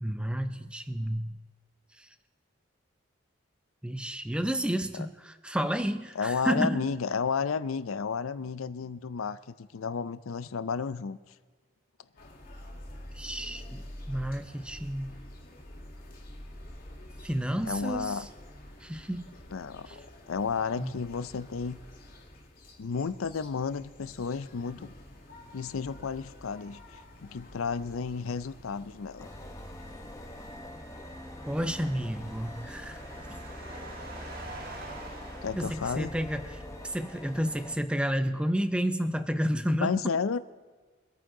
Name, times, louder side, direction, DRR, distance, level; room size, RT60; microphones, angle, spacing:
voice 1, 0.0-1.4 2.0-2.1 3.8-7.0 13.1-15.1 17.2-18.3 18.8-19.3 19.9-20.0 20.8-20.9 31.5-33.0 35.6-40.0, equal, 5° right, 10 dB, 0.5 m, -31 dB
voice 2, 6.2-11.2 17.6-18.3 19.5-20.0 20.3-21.8 22.8-24.9 25.5-29.3 35.4-36.1 39.8-40.4, left 5 dB, 90° left, 15 dB, 0.5 m, -32 dB
sound 1, 12.2-30.6, left 1 dB, 45° left, 2.2 m, -48 dB
sound 2, 29.2-37.8, left 1 dB, 15° left, 1.1 m, -44 dB
sound 3, 30.4-36.6, right 2 dB, 45° right, 1.6 m, -47 dB
24.0 x 9.2 x 3.8 m, 1.4 s
head